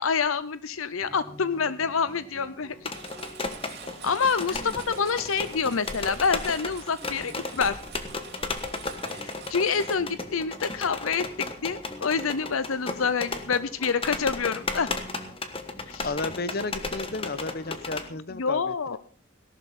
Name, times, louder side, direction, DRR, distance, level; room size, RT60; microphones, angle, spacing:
voice 1, 0.0-2.9 4.0-7.8 9.1-14.9 15.9-16.1 18.3-19.0, left 5 dB, 80° left, 15 dB, 0.7 m, -27 dB
sound 1, 1.0-18.4, equal, 10° left, 6.4 m, -49 dB
sound 2, 2.8-18.1, left 3 dB, 25° left, 1.3 m, -35 dB
Engine, 2.9-10.0, right 7 dB, 50° right, 2.9 m, -46 dB
voice 2, 16.0-19.0, left 3 dB, 45° left, 14 dB, 1.0 m, -33 dB
17.5 x 12.0 x 4.3 m, 0.40 s
head